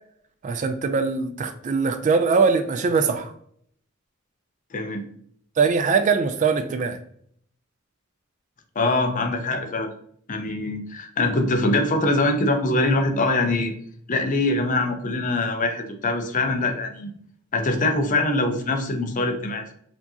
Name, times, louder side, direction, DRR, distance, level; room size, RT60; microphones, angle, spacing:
voice 1, 0.4-3.3 5.6-7.0, right 5 dB, 35° right, 9 dB, 0.3 m, -22 dB
voice 2, 4.7-5.0 8.8-9.9 10.3-13.7 14.1-17.1 17.5-19.7, left 2 dB, 40° left, 5 dB, 0.6 m, -23 dB
4.3 x 2.8 x 2.7 m, 0.64 s
head